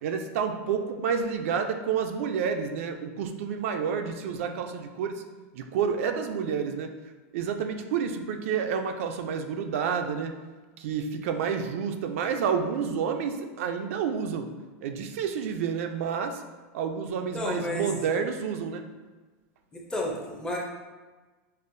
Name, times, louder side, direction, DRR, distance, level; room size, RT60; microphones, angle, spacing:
voice 1, 0.0-5.2 5.6-6.9 7.3-10.3 10.8-14.5 14.8-16.4 16.7-18.8, right 6 dB, 65° right, 6 dB, 0.3 m, -29 dB
voice 2, 17.3-17.9 19.9-20.6, left 1 dB, 10° left, -1 dB, 0.5 m, -31 dB
5.4 x 2.0 x 2.5 m, 1.3 s
supercardioid pair, 155°, 8 cm